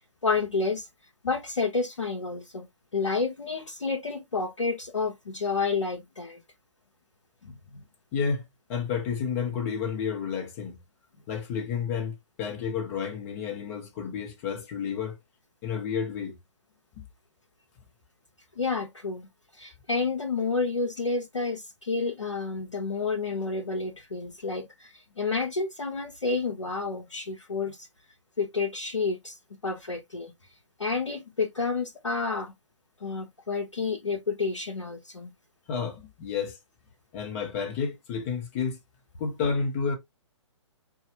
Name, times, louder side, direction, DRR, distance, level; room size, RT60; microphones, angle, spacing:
voice 1, 0.2-0.9 1.2-2.7 2.9-6.4 7.4-7.8 18.6-27.9 28.4-30.3 30.8-32.5 33.0-35.3, left 4 dB, 80° left, 0.7 m, -30 dB
voice 2, 8.1-10.8 11.3-15.2 15.6-16.4 17.0-17.1 35.7-36.6 37.1-38.8 39.2-40.0, left 6 dB, 30° left, 0.9 m, -31 dB
4.0 x 2.4 x 2.7 m
figure-of-eight pair, 130°, 15 cm